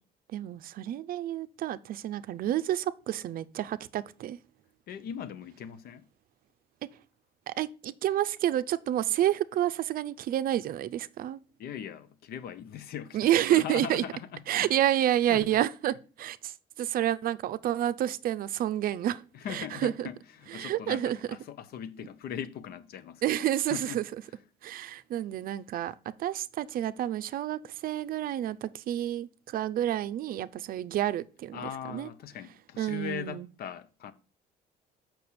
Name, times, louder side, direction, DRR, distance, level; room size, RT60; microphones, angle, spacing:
voice 1, 0.3-4.4 7.5-11.4 13.1-14.0 14.5-19.2 19.5-20.1 20.5-21.2 23.2-24.0 24.6-31.6 31.9-32.1 32.8-33.5, right 12 dB, 60° right, 0.5 m, -29 dB
voice 2, 4.9-6.1 11.6-14.7 15.3-15.6 19.3-24.0 31.5-34.1, left 9 dB, 65° left, 0.9 m, -40 dB
6.7 x 6.0 x 4.2 m
cardioid pair, 110°, 17 cm